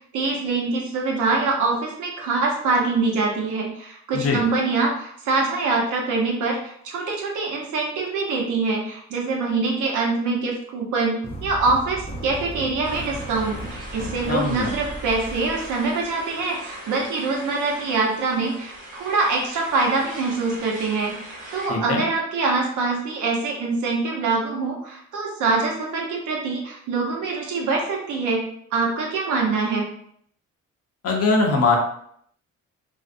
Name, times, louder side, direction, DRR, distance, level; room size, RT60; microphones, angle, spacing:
voice 1, 0.1-21.1 21.5-29.9, right 3 dB, 75° right, -1 dB, 0.8 m, -24 dB
sound 1, 11.2-16.4, right 1 dB, 20° left, 0.4 m, -36 dB
sound 2, 12.8-21.7, right 1 dB, 25° right, 1.1 m, -40 dB
voice 2, 14.3-14.7 21.7-22.0 31.0-31.8, left 3 dB, 50° left, 0 dB, 0.7 m, -21 dB
2.5 x 2.0 x 2.5 m, 0.67 s
cardioid pair, 90°, 30 cm